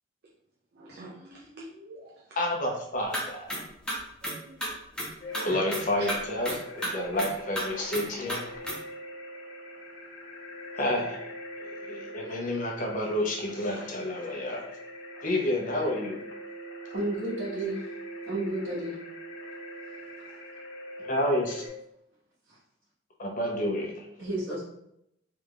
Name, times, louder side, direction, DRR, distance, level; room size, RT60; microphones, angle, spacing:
voice 1, 0.7-2.2 4.2-4.6 5.3-5.6, right 2 dB, 55° right, -4 dB, 0.5 m, -45 dB
voice 2, 2.4-3.5 5.4-8.4 10.7-11.3 11.6-14.6 15.2-16.2 21.0-21.6 23.2-24.1, left 1 dB, 45° left, 0 dB, 0.8 m, -30 dB
sound 1, 3.1-3.2 3.5-3.6 3.9-4.7 5.0-5.1 5.3-5.4 5.7-5.8 6.1-6.2 6.5-6.6 6.8-6.9 7.2-7.6 7.9-8.0 8.3-8.4 8.7-8.8, equal, 5° left, 0.8 m, -31 dB
sound 2, 5.2-21.7, equal, 75° left, 1.0 m, -43 dB
voice 3, 16.9-17.8 18.2-19.0 22.5-22.6 24.2-24.6, right 1 dB, 90° right, -11 dB, 1.5 m, -31 dB
3.5 x 3.4 x 2.4 m, 0.78 s
head